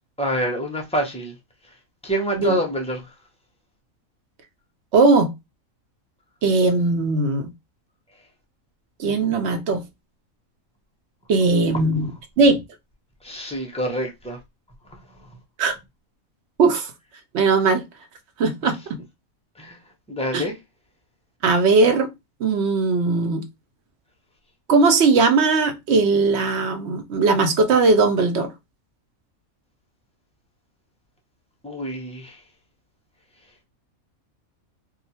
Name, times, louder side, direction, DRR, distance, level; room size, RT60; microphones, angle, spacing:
voice 1, 0.2-1.3 2.0-3.0 13.2-14.4 19.6-19.8 20.1-20.6 31.6-32.4, right 1 dB, 10° left, 0.3 m, -26 dB
voice 2, 4.9-5.3 6.4-7.5 9.0-9.8 11.3-12.1 12.4-12.6 15.6-15.8 16.6-16.9 17.3-17.8 18.4-19.0 20.3-20.5 21.4-22.1 22.4-23.4 24.7-28.5, right 3 dB, 60° right, 0.8 m, -19 dB
2.5 x 2.3 x 4.1 m
omnidirectional pair, 1.5 m